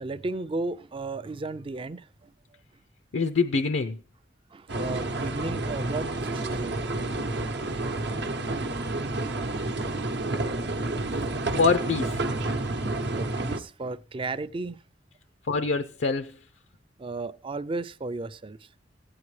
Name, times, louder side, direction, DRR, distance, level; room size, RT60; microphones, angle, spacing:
voice 1, 0.0-2.3 4.5-6.8 12.4-12.6 13.2-14.8 17.0-18.6, right 3 dB, 30° right, 0.4 m, -34 dB
voice 2, 3.1-4.0 11.6-12.2 15.5-16.4, left 4 dB, 70° left, 0.5 m, -25 dB
sound 1, 4.7-13.6, right 2 dB, 65° right, 0.8 m, -30 dB
15.0 x 9.7 x 3.2 m
head